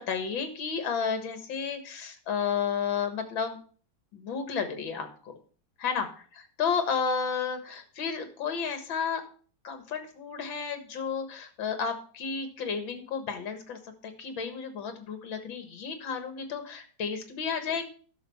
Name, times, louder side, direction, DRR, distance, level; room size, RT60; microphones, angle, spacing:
voice 1, 0.0-3.6 4.1-5.3 5.8-6.1 6.4-9.2 9.6-17.9, left 6 dB, 75° left, 8 dB, 2.3 m, -32 dB
11.0 x 6.3 x 5.7 m, 0.42 s
omnidirectional pair, 2.1 m